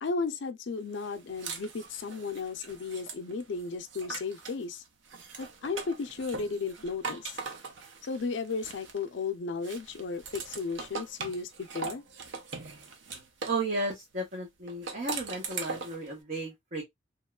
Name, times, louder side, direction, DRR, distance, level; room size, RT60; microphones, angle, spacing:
voice 1, 0.0-4.8 5.4-7.4 8.0-12.0, left 4 dB, 70° left, 0.4 m, -34 dB
sound 1, 1.0-4.6 5.0-9.2 9.6-13.6 14.7-16.1, right 5 dB, 80° right, 0.7 m, -41 dB
voice 2, 13.5-16.8, right 2 dB, 50° right, 1.0 m, -34 dB
3.0 x 2.9 x 2.2 m
head